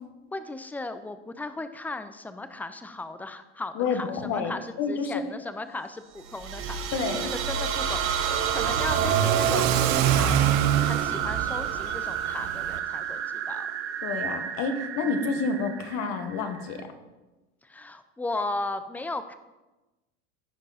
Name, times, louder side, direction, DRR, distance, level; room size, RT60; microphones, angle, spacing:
voice 1, 0.3-7.0 7.3-8.1 8.5-10.5 10.8-13.7 15.0-15.1 17.6-19.3, left 2 dB, 5° left, 11 dB, 0.5 m, -36 dB
voice 2, 3.7-5.2 6.9-7.3 9.0-9.1 14.0-16.9, left 4 dB, 55° left, 7 dB, 1.5 m, -29 dB
sound 1, 6.2-16.8, right 8 dB, 40° right, 1.0 m, -30 dB
Car / Accelerating revving vroom, 6.6-12.8, right 11 dB, 60° right, 0.8 m, -27 dB
15.0 x 5.1 x 4.2 m, 1.1 s
supercardioid pair, 110°, 32 cm